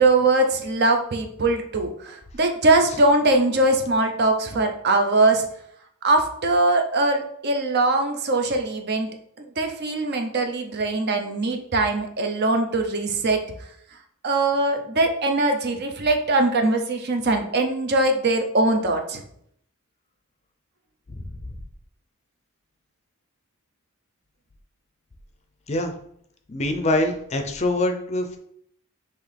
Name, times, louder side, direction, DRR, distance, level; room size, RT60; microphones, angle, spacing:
voice 1, 0.0-5.5 6.0-9.1 9.4-13.4 14.2-19.2, right 2 dB, 50° right, 5 dB, 0.7 m, -21 dB
voice 2, 26.5-28.4, left 1 dB, 30° left, 5 dB, 0.5 m, -24 dB
5.9 x 2.7 x 3.3 m, 0.67 s
head